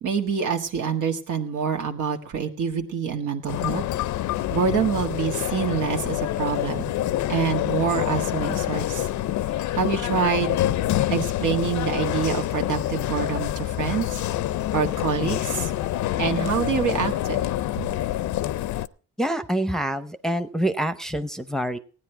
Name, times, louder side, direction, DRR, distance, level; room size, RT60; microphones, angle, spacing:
voice 1, 0.0-3.8 4.5-6.9 7.3-9.1 9.7-10.7 11.1-14.2 14.7-15.7 16.2-17.4 17.8-17.9, right 6 dB, 80° right, 3 dB, 1.6 m, -26 dB
sound 1, 3.5-18.9, left 13 dB, 70° left, 0.6 m, -26 dB
voice 2, 19.2-21.8, right 1 dB, ahead, 10 dB, 0.7 m, -26 dB
15.5 x 9.6 x 4.5 m, 0.41 s
cardioid pair, 90°, 30 cm